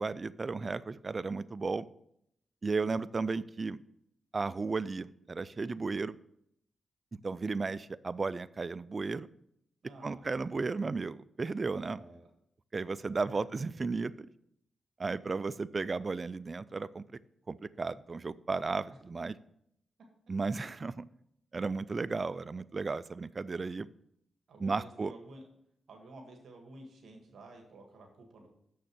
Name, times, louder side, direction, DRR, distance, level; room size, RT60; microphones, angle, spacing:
voice 1, 0.0-1.9 2.6-3.8 4.3-6.2 7.1-9.3 10.0-12.0 12.7-14.3 15.0-17.0 17.5-19.3 20.3-21.0 21.5-23.9 24.6-25.1, right 4 dB, 40° right, 17 dB, 0.4 m, -34 dB
voice 2, 9.8-10.4 11.9-12.3 13.1-13.5 18.9-19.0 24.5-25.5 25.9-28.5, right 2 dB, 80° right, 2 dB, 1.5 m, -52 dB
6.8 x 6.4 x 6.1 m, 0.74 s
cardioid pair, 75°, 0 cm